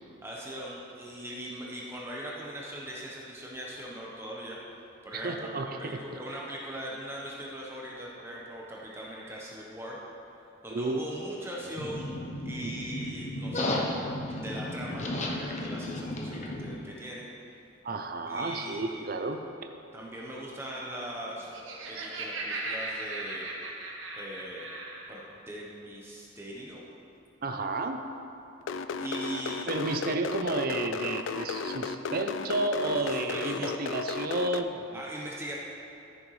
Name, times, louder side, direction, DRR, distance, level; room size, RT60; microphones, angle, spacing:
voice 1, 0.2-4.8 5.0-10.0 10.6-12.1 12.4-17.3 18.3-19.1 19.9-21.5 21.9-23.5 24.2-24.7 25.1-26.8 29.0-29.7 33.0-33.7 34.9-35.6, right 1 dB, 10° right, -4 dB, 0.9 m, -40 dB
voice 2, 5.1-6.0 6.3-6.4 10.7-11.0 12.6-12.7 17.8-19.4 21.9-22.0 27.4-28.0 29.7-35.0, right 2 dB, 45° right, 5 dB, 0.5 m, -32 dB
sound 1, 11.8-16.8, left 1 dB, 35° left, 0.7 m, -34 dB
Laughter, 21.3-25.1, right 2 dB, 75° right, 1.2 m, -37 dB
sound 2, 28.6-34.6, left 5 dB, 70° left, 0.3 m, -34 dB
14.0 x 6.5 x 3.2 m, 2.7 s
head